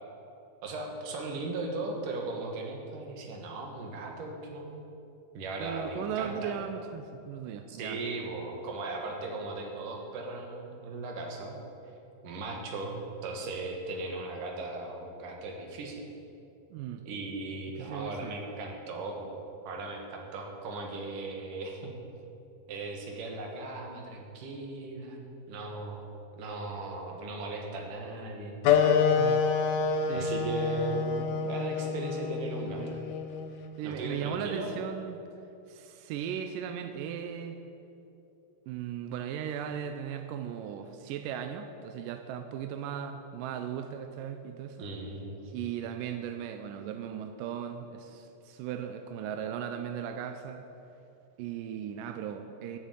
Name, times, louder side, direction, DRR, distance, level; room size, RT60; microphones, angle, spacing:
voice 1, 0.6-4.8 5.3-6.5 7.7-11.6 12.2-16.1 17.1-19.3 19.7-21.9 22.7-25.2 25.5-26.1 26.3-28.6 30.1-32.8 33.8-34.7 44.8-45.5, right 2 dB, 60° right, 1 dB, 3.0 m, -37 dB
voice 2, 5.6-8.0 16.7-17.0 17.8-18.4 29.2-29.4 30.1-30.3 32.7-33.0 33.8-35.2 35.7-37.6 38.7-44.9 45.5-50.7 51.4-52.8, right 8 dB, 80° right, 7 dB, 2.0 m, -37 dB
sound 1, 28.6-33.8, left 6 dB, 70° left, 2.0 m, -27 dB
14.0 x 7.0 x 9.0 m, 2.8 s
omnidirectional pair, 4.4 m